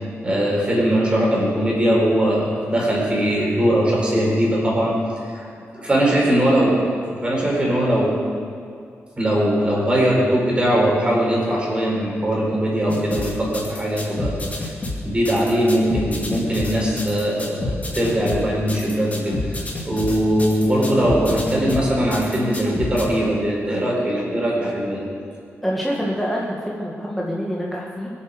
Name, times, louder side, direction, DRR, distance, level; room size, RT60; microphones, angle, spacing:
voice 1, 0.2-5.0 5.3-5.5 5.7-6.8 7.1-8.2 9.2-14.4 15.0-19.6 19.8-25.0, equal, 20° right, -4 dB, 4.6 m, -20 dB
sound 1, 12.9-23.0, left 2 dB, 30° left, 2.6 m, -29 dB
voice 2, 25.6-28.1, equal, ahead, -4 dB, 1.8 m, -26 dB
22.5 x 8.3 x 6.8 m, 2.3 s
wide cardioid pair, 150°, 5 cm